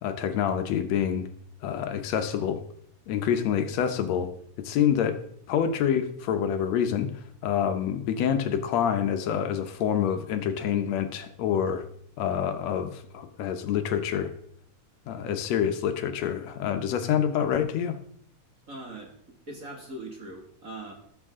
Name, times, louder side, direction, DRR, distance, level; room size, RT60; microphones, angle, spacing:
voice 1, 0.0-1.3 1.6-2.6 3.1-4.3 4.6-5.2 5.5-11.8 12.2-14.3 15.1-18.0, left 8 dB, 70° left, 8 dB, 2.1 m, -27 dB
voice 2, 18.7-20.9, right 2 dB, 30° right, 0 dB, 2.1 m, -41 dB
19.0 x 7.1 x 3.7 m, 0.66 s
omnidirectional pair, 3.3 m